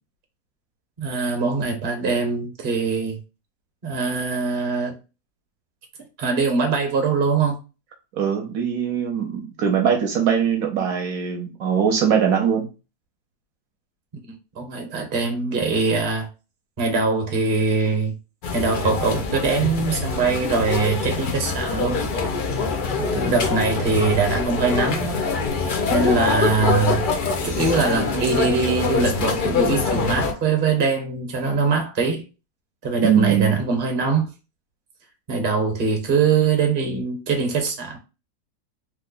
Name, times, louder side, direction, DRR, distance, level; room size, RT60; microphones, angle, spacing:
voice 1, 1.0-3.2 3.8-4.9 6.2-7.6 14.3-16.3 16.8-18.1 18.5-22.0 23.0-25.3 25.9-27.1 27.4-32.2 32.8-34.3 35.3-38.0, right 4 dB, 40° right, 0.8 m, -22 dB
voice 2, 8.1-12.7 33.0-33.6, right 8 dB, 70° right, 1.0 m, -21 dB
sound 1, 18.4-30.3, left 4 dB, 80° left, 0.4 m, -24 dB
3.2 x 2.1 x 3.7 m
omnidirectional pair, 1.7 m